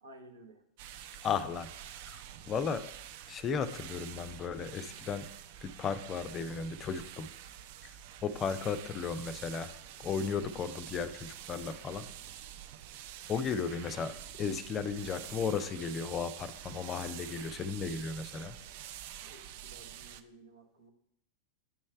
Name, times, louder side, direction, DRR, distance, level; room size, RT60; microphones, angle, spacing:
voice 1, 0.0-0.6 19.2-20.9, right 1 dB, 70° right, 3 dB, 1.0 m, -55 dB
sound 1, 0.8-20.2, right 11 dB, 50° right, 0.4 m, -47 dB
voice 2, 1.2-1.7 2.0-2.9 3.3-5.2 5.6-7.3 8.2-9.7 10.0-12.1 13.3-14.1 14.4-18.5, left 6 dB, 25° left, 11 dB, 0.4 m, -35 dB
9.2 x 3.2 x 4.5 m, 0.73 s
figure-of-eight pair, 90°, 0 cm